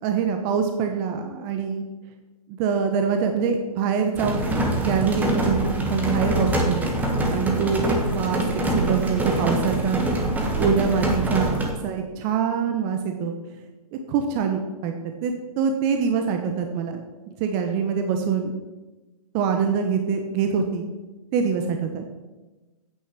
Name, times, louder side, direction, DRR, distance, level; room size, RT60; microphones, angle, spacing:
voice 1, 0.0-1.8 2.6-6.8 7.3-10.1 10.5-13.3 14.1-14.9 15.2-17.0 17.4-18.5 19.3-20.9 21.3-22.0, right 6 dB, 30° right, 5 dB, 0.9 m, -24 dB
sound 1, 4.2-11.7, right 1 dB, 10° right, 1.4 m, -24 dB
9.1 x 6.5 x 6.7 m, 1.1 s
hypercardioid pair, 145°, 20 cm